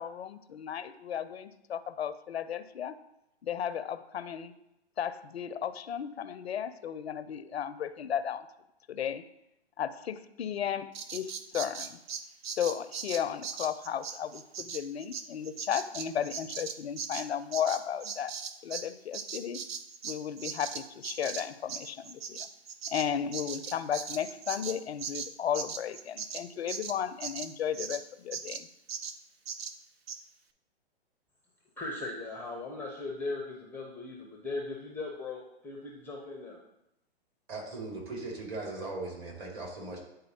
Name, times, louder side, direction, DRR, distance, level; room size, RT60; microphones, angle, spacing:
voice 1, 0.0-3.0 3.4-4.5 5.0-8.5 8.9-9.2 9.8-12.0 12.6-18.4 18.6-19.6 20.0-22.5 22.9-28.7, left 9 dB, 85° left, 13 dB, 0.5 m, -34 dB
Bird vocalization bird call bird song, 10.9-18.9 19.1-28.0 28.3-28.6 28.9-29.2 29.5-29.7 30.1-30.2, right 6 dB, 70° right, 0.6 m, -39 dB
voice 2, 31.8-36.6, left 3 dB, 5° left, -1 dB, 0.5 m, -38 dB
voice 3, 37.5-40.0, right 2 dB, 35° right, -1 dB, 1.9 m, -38 dB
9.5 x 3.8 x 2.7 m, 0.86 s
hypercardioid pair, 125°, 31 cm